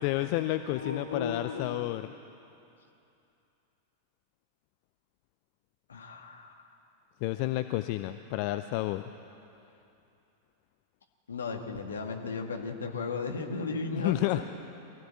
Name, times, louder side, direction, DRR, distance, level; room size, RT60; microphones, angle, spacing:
voice 1, 0.0-2.1 7.2-9.0 13.9-14.4, left 17 dB, 45° left, 10 dB, 0.6 m, -30 dB
voice 2, 0.7-1.8 5.9-6.6 11.3-14.4, left 4 dB, 70° left, 3 dB, 1.9 m, -35 dB
23.5 x 15.5 x 7.4 m, 2.7 s
figure-of-eight pair, 90°, 0 cm